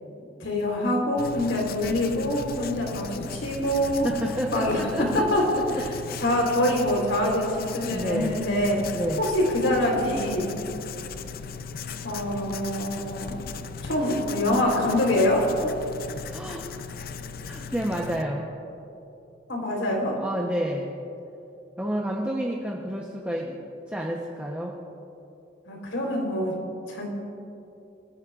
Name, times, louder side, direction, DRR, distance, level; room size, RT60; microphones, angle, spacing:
voice 1, 0.4-4.1 4.5-5.4 5.8-5.9 6.2-8.8 9.2-10.6 12.0-13.3 13.8-15.4 19.5-20.2 25.7-26.5 26.9-27.1, left 1 dB, 85° left, -1 dB, 3.9 m, -25 dB
Writing, 1.2-18.2, left 5 dB, 50° left, 0.5 m, -37 dB
voice 2, 4.0-5.8 6.1-6.2 7.8-8.4 8.9-9.2 15.6-15.7 16.3-16.8 17.4-18.5 20.2-20.9 21.8-23.6 23.9-24.8, equal, 10° right, -3 dB, 1.0 m, -30 dB
26.0 x 15.5 x 2.5 m, 2.7 s
head